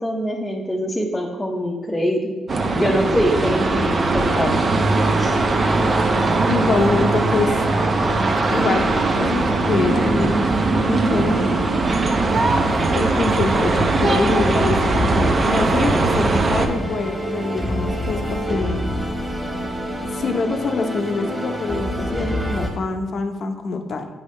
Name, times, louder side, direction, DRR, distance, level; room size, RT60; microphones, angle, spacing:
voice 1, 0.0-2.4 2.7-4.6 5.2-5.4, equal, 10° left, -2 dB, 0.7 m, -23 dB
sound 1, 2.5-16.7, right 3 dB, 40° right, 0.6 m, -20 dB
sound 2, 5.0-22.7, equal, 10° right, 1.5 m, -29 dB
voice 2, 6.5-7.6 8.5-10.5 10.8-11.7 12.9-18.8 20.1-24.1, left 4 dB, 55° left, 5 dB, 0.7 m, -25 dB
8.5 x 4.9 x 3.2 m, 1.3 s
cardioid pair, 90°, 0 cm